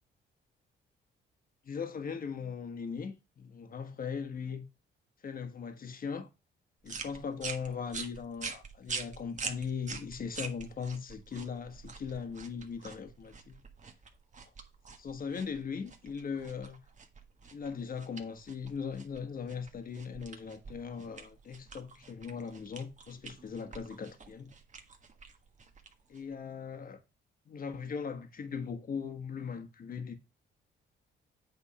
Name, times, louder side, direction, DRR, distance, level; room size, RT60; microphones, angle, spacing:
voice 1, 1.6-4.6 5.2-6.3 6.8-13.6 14.4-14.5 15.0-16.8 17.5-24.5 26.1-27.0 27.5-30.1, left 6 dB, 45° left, 1.4 m, -39 dB
sound 1, 6.8-26.4, right 5 dB, 40° right, 1.5 m, -46 dB
8.7 x 3.6 x 4.9 m
cardioid pair, 90°, 20 cm